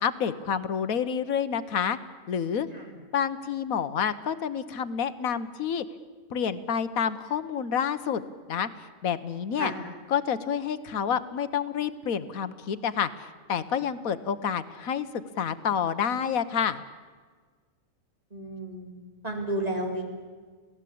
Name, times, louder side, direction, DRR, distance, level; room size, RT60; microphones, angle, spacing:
voice 1, 0.0-2.0 2.3-2.7 3.1-5.8 6.3-8.2 8.5-8.7 9.0-9.7 10.1-13.1 13.5-16.8, left 7 dB, 85° left, 13 dB, 1.4 m, -28 dB
voice 2, 18.3-18.9 19.2-20.0, right 1 dB, 25° right, 2 dB, 4.0 m, -32 dB
27.5 x 17.5 x 8.5 m, 1.5 s
omnidirectional pair, 1.4 m